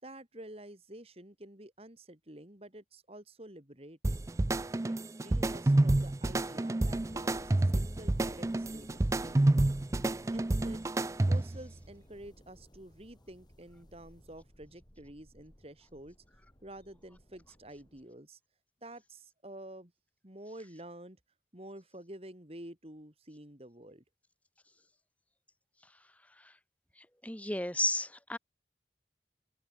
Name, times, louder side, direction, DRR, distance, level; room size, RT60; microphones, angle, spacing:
voice 1, 0.0-4.2 5.2-9.7 10.3-10.8 11.3-16.2 16.6-18.4 18.8-19.9 20.2-21.2 21.5-24.0, right 1 dB, 35° right, 3.8 m, -49 dB
sound 1, 4.0-11.7, right 2 dB, 20° right, 0.3 m, -29 dB
sound 2, 7.1-18.1, equal, 25° left, 6.1 m, -57 dB
voice 2, 27.0-28.4, left 2 dB, 10° left, 2.1 m, -33 dB
open air
head